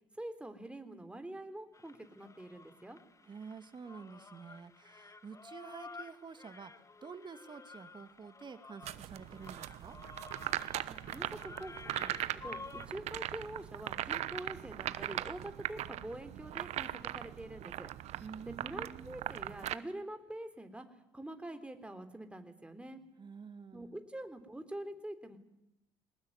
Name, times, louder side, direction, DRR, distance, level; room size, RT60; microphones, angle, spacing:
voice 1, 0.2-3.0 10.9-17.9 18.5-20.9 21.1-23.0 23.7-25.4, right 1 dB, 10° right, 7 dB, 3.7 m, -45 dB
sound 1, 1.7-12.9, left 4 dB, 25° left, 1.4 m, -52 dB
voice 2, 3.2-6.7 7.0-10.0 18.2-19.1 23.2-24.0, right 5 dB, 40° right, 10 dB, 2.2 m, -49 dB
sound 2, 8.8-19.7, right 13 dB, 65° right, 1.0 m, -40 dB
22.0 x 19.5 x 9.9 m, 0.87 s
hypercardioid pair, 55°, 12 cm